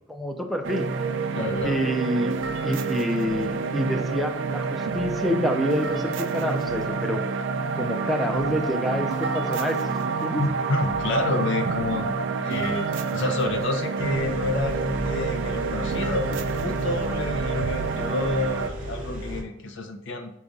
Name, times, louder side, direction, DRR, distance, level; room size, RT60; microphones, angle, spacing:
voice 1, 0.1-0.9 1.6-2.3 2.6-7.2 7.8-10.4, equal, ahead, 3 dB, 0.4 m, -27 dB
sound 1, 0.6-18.7, right 4 dB, 65° right, 0.3 m, -28 dB
voice 2, 1.3-1.8 10.4-12.1 12.4-20.3, left 2 dB, 65° left, 5 dB, 0.6 m, -29 dB
sound 2, 14.0-19.4, equal, 40° right, 0.8 m, -34 dB
5.0 x 2.4 x 3.9 m, 0.86 s
head